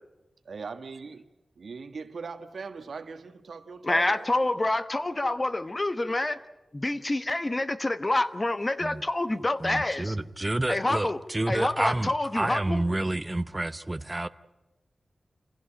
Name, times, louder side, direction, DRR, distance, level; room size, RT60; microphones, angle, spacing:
voice 1, 0.4-1.2 1.6-4.3, right 4 dB, 80° right, 1.4 m, -40 dB
voice 2, 3.8-6.4 6.7-10.1 10.7-11.2 11.5-12.8, left 2 dB, 30° left, 1.1 m, -27 dB
voice 3, 9.6-14.3, right 2 dB, 20° right, 0.8 m, -29 dB
27.5 x 16.5 x 8.9 m
wide cardioid pair, 75°, 0 cm